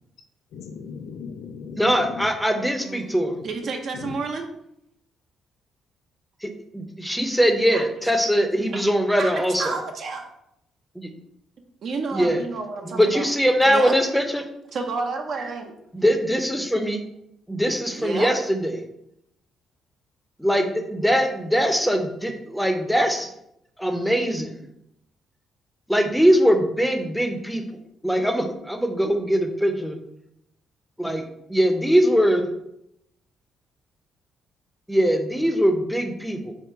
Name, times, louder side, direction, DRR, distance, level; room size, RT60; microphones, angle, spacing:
voice 1, 0.5-2.3 3.9-4.2, left 6 dB, 85° left, 5 dB, 0.3 m, -37 dB
voice 2, 1.8-3.4 6.4-9.7 10.9-11.1 12.1-12.4 12.8-14.4 15.9-17.0 17.5-18.8 20.4-23.3 23.8-24.6 25.9-27.6 28.0-30.0 31.0-32.5 34.9-36.5, equal, ahead, 5 dB, 0.6 m, -22 dB
voice 3, 2.8-3.2 3.4-4.4 7.7-7.8 8.7-8.8 9.2-10.3 11.8-13.3 13.6-13.9 14.7-15.7 17.9-18.3, right 4 dB, 60° right, 3 dB, 0.5 m, -30 dB
3.5 x 2.4 x 4.5 m, 0.78 s
cardioid pair, 90°, 0 cm